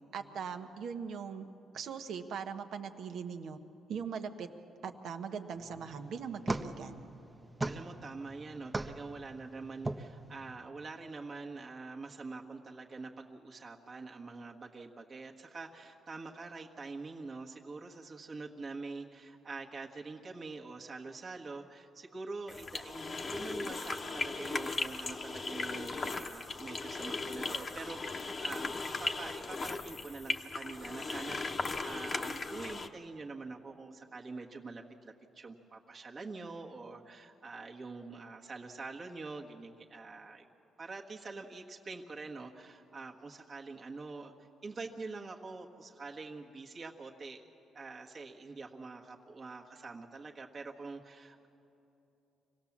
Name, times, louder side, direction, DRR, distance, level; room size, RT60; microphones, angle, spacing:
voice 1, 0.1-1.4 1.7-3.6 3.9-4.5 4.8-7.0, right 6 dB, 70° right, 6 dB, 1.2 m, -40 dB
sound 1, 5.6-10.5, right 2 dB, 20° right, 0.8 m, -40 dB
voice 2, 7.7-40.5 40.8-47.4 47.7-51.5, right 3 dB, 40° right, 0 dB, 1.4 m, -45 dB
sound 2, 22.5-32.9, left 3 dB, 35° left, 1.0 m, -37 dB
25.0 x 17.5 x 7.3 m, 3.0 s
cardioid pair, 90°, 0 cm